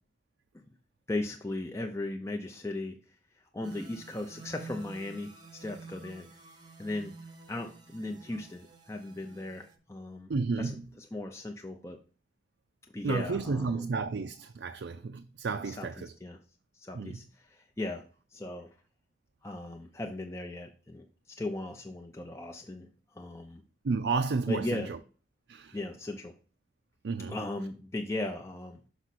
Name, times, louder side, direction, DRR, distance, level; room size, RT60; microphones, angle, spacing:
voice 1, 1.1-3.0 3.5-6.4 6.8-7.1 7.5-10.3 10.6-10.7 11.0-12.0 12.9-13.8 15.6-16.4 16.7-18.1 18.3-18.7 19.4-21.1 21.4-23.6 24.5-24.9 25.7-26.3 27.3-28.8, left 2 dB, 15° left, 0.5 m, -37 dB
sound 1, 3.6-9.8, right 3 dB, 25° right, 0.8 m, -49 dB
voice 2, 10.3-10.8 13.0-16.1 16.9-17.2 23.8-25.0 25.5-25.8 27.0-27.4, right 4 dB, 70° right, 0.4 m, -32 dB
6.1 x 5.4 x 4.1 m
head